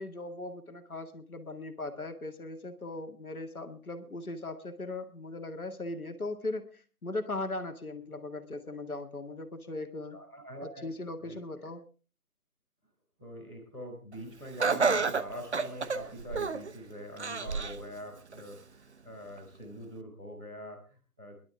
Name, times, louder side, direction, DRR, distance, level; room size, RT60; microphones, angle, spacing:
voice 1, 0.0-10.2 10.6-11.8, left 2 dB, 70° left, 7 dB, 2.2 m, -39 dB
voice 2, 10.1-10.9 11.2-11.4 13.2-21.4, equal, ahead, -17 dB, 0.9 m, -44 dB
Laughter, 14.6-16.7 17.2-17.8 18.3-18.4 19.4-19.5, right 4 dB, 50° right, 0.9 m, -29 dB
21.5 x 12.0 x 3.5 m, 0.36 s
figure-of-eight pair, 155°, 45 cm